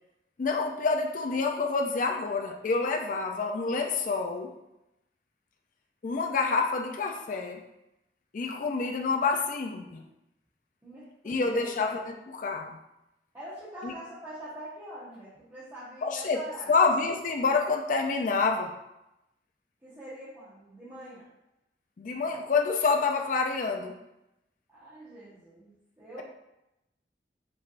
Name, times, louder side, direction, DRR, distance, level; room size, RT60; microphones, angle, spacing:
voice 1, 0.4-4.5 6.0-7.6 8.3-10.0 11.2-12.8 13.8-13.9 16.0-16.4 16.7-18.7 22.0-24.0, left 4 dB, 45° left, 3 dB, 0.4 m, -27 dB
voice 2, 10.8-11.8 13.3-16.7 19.8-21.3 24.7-26.2, right 1 dB, 15° right, -12 dB, 1.1 m, -44 dB
5.3 x 3.4 x 2.5 m, 0.90 s
head